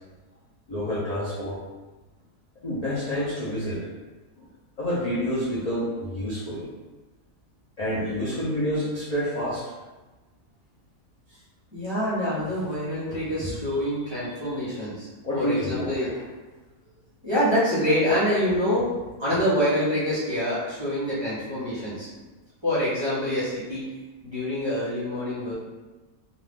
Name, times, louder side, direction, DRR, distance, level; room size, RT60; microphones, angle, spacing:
voice 1, 0.7-1.6 2.6-3.9 4.4-4.5 4.8-6.7 7.8-9.7 11.3-11.4 13.1-13.6 15.2-16.2 22.1-22.2 25.5-25.6, equal, 65° left, -9 dB, 0.4 m, -29 dB
voice 2, 11.7-15.1 15.3-16.1 17.2-18.9 19.2-22.1 22.6-23.8 24.2-25.5, equal, 25° right, -11 dB, 0.6 m, -26 dB
2.5 x 2.4 x 3.5 m, 1.2 s
omnidirectional pair, 1.6 m